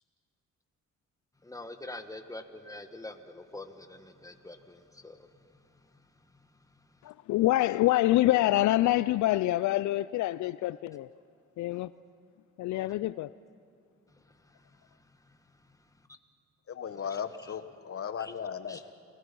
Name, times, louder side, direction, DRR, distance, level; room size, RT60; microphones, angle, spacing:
voice 1, 1.4-5.2 18.2-18.3 18.7-18.9, left 2 dB, 10° left, 1.6 m, -44 dB
voice 2, 7.0-11.1 11.6-11.9 12.6-13.3, left 15 dB, 75° left, 0.4 m, -26 dB
voice 3, 16.7-18.8, left 7 dB, 50° left, 1.2 m, -36 dB
29.5 x 19.5 x 5.4 m
cardioid pair, 90°, 30 cm